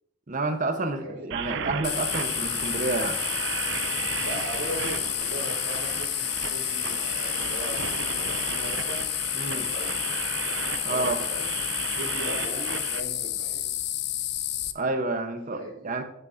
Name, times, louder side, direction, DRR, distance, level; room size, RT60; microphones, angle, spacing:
voice 1, 0.3-3.2 9.3-9.7 10.8-11.2 14.7-16.0, right 3 dB, 40° right, 6 dB, 0.9 m, -29 dB
voice 2, 1.0-1.3 4.2-9.0 9.4-10.0 10.8-11.5 11.9-13.6 15.5-16.0, right 1 dB, 80° right, -5 dB, 2.8 m, -38 dB
sound 1, 1.3-13.0, right 8 dB, 60° right, 0.4 m, -34 dB
sound 2, 1.8-14.7, left 13 dB, 55° left, 0.5 m, -30 dB
8.9 x 8.4 x 2.6 m, 0.76 s
head